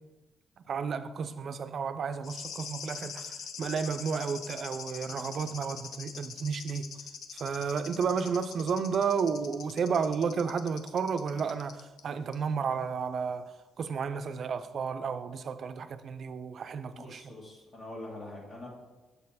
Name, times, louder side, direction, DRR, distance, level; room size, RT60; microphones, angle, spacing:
voice 1, 0.7-6.9 7.3-17.2, right 6 dB, 55° right, 0.4 m, -32 dB
sound 1, 2.2-12.0 12.3-12.4, left 7 dB, 70° left, 0.5 m, -43 dB
voice 2, 16.9-18.7, left 1 dB, 45° left, 1.6 m, -44 dB
6.8 x 4.2 x 4.1 m
cardioid pair, 90°, 0 cm